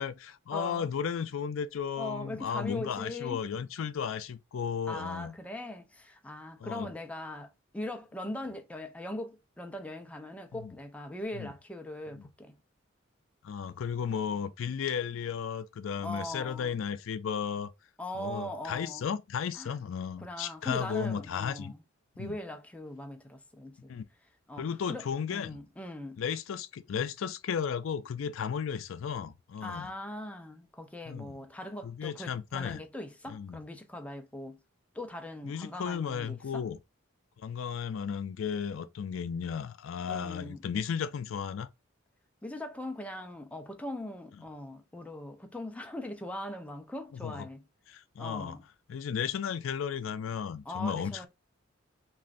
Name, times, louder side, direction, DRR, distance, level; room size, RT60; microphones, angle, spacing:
voice 1, 0.0-5.3 6.6-6.9 10.5-10.7 11.3-11.5 12.2-12.3 13.4-17.7 18.2-21.7 22.2-22.4 23.9-24.0 24.6-25.6 26.2-29.9 31.1-31.3 31.8-32.8 33.3-33.6 35.4-36.8 37.4-41.7 47.1-47.5 47.9-48.6 48.9-51.3, left 7 dB, 70° left, 0.4 m, -34 dB
voice 2, 0.5-0.9 2.0-3.4 4.9-12.6 16.0-16.8 18.0-19.1 19.5-19.7 20.2-21.8 22.2-23.9 24.5-26.2 29.6-34.6 34.9-36.6 40.1-40.6 42.4-47.7 48.2-48.6 50.7-51.3, left 1 dB, 5° left, 0.5 m, -40 dB
3.1 x 2.5 x 2.3 m
head